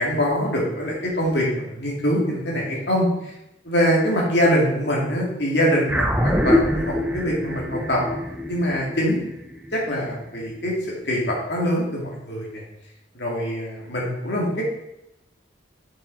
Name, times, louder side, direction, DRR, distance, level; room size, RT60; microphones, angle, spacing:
voice 1, 0.0-3.3 3.6-8.0 8.5-9.2 9.7-12.6 13.1-14.6, equal, 60° left, -2 dB, 2.3 m, -23 dB
sound 1, 5.9-10.5, left 1 dB, 5° right, 0.5 m, -24 dB
7.3 x 5.9 x 4.2 m, 0.88 s
head